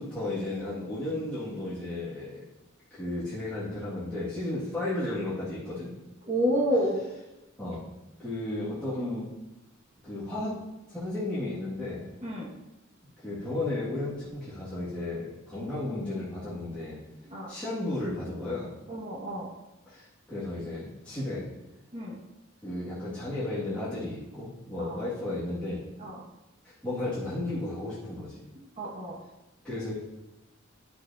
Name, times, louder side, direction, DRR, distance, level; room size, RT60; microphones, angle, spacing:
voice 1, 0.0-2.4 2.9-5.9 7.6-7.8 8.2-9.3 10.0-10.6 10.9-12.0 13.2-17.0 17.5-18.7 19.9-21.4 22.6-25.8 26.6-28.4 29.6-29.9, left 2 dB, 5° left, -13 dB, 2.4 m, -34 dB
voice 2, 6.3-7.0 12.2-12.5 17.3-17.5 18.9-19.5 21.9-22.2 24.8-25.0 26.0-26.2 28.8-29.2, equal, 35° right, -5 dB, 2.1 m, -29 dB
11.0 x 6.2 x 2.9 m, 0.98 s
head